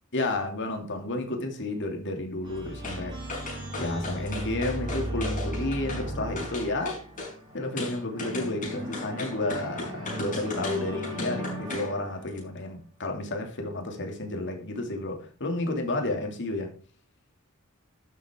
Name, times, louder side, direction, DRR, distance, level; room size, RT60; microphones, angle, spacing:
voice 1, 0.1-3.2 3.7-6.9 7.5-16.8, left 2 dB, 55° left, 2.6 m, -31 dB
sound 1, 2.4-12.5, equal, 20° right, 3.9 m, -37 dB
sound 2, 2.8-3.0 3.3-6.1 6.4-7.3 7.8-11.9 12.3-12.4, left 2 dB, 40° left, 5.6 m, -37 dB
12.0 x 7.7 x 3.7 m
head